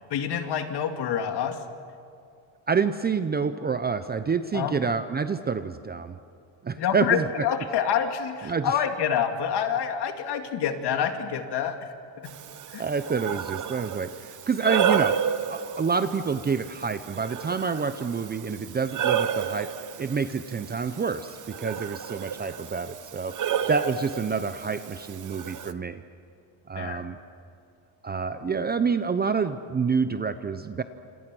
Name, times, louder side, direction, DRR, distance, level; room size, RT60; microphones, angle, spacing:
voice 1, 0.1-1.7 4.5-4.9 6.8-11.9 12.7-12.8 26.8-27.0, left 8 dB, 55° left, 6 dB, 2.3 m, -27 dB
voice 2, 2.7-6.2 6.6-7.3 8.4-8.7 12.8-15.2 15.5-19.7 20.0-23.3 23.7-26.0 26.7-27.2 28.0-30.8, right 5 dB, 20° right, 11 dB, 0.6 m, -28 dB
Breathing, 12.3-25.7, right 8 dB, 40° right, 1.0 m, -31 dB
28.0 x 27.5 x 6.2 m, 2.4 s
cardioid pair, 140°, 48 cm